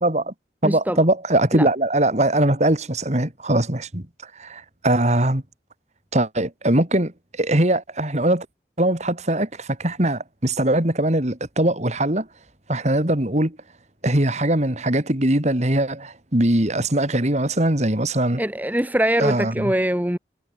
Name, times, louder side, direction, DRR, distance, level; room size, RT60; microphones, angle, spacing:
voice 1, 0.0-0.3 0.6-4.1 4.4-5.4 6.1-8.5 8.8-12.3 12.7-13.6 14.0-18.4 19.2-19.7, right 1 dB, 40° right, 2.8 m, -21 dB
voice 2, 0.6-1.0 1.5-1.7 18.4-20.2, right 1 dB, 10° right, 1.1 m, -23 dB
head